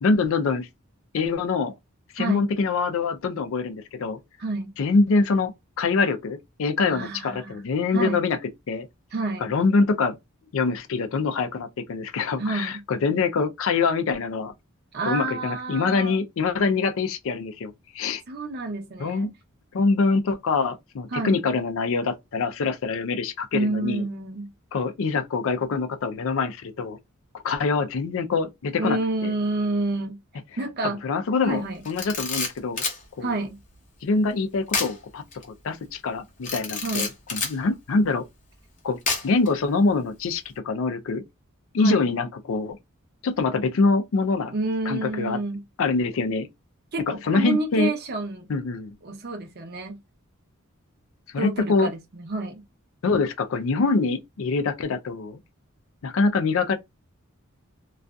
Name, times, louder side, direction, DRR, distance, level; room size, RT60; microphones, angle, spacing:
voice 1, 0.0-0.7 1.1-1.7 2.1-4.2 4.8-5.5 5.8-8.4 8.7-8.9 9.4-10.2 10.5-14.5 15.0-18.2 19.0-19.3 19.7-24.0 24.7-27.0 27.4-29.3 31.0-32.8 33.2-33.3 34.0-35.2 35.6-38.2 38.8-39.0 39.2-41.2 41.7-42.8 43.2-44.5 44.9-45.4 45.8-46.5 47.1-47.9 48.5-48.9 51.3-51.9 53.0-55.4 56.0-56.8, left 4 dB, 65° left, 0.4 m, -24 dB
voice 2, 2.2-2.5 4.4-4.7 6.9-7.6 7.9-8.2 9.1-9.5 12.4-12.8 14.9-16.2 18.3-19.3 21.1-21.3 23.5-24.5 28.8-30.2 30.6-31.0 31.4-31.8 33.2-33.6 36.8-37.1 41.8-42.1 44.5-45.6 46.9-48.5 49.0-50.0 51.4-52.6, right 2 dB, 50° right, 0.7 m, -29 dB
Camera, 31.8-33.0 34.7-35.0 35.3-35.4 36.4-37.6 39.1-39.5, left 4 dB, 35° left, 0.8 m, -28 dB
2.5 x 2.3 x 2.2 m
head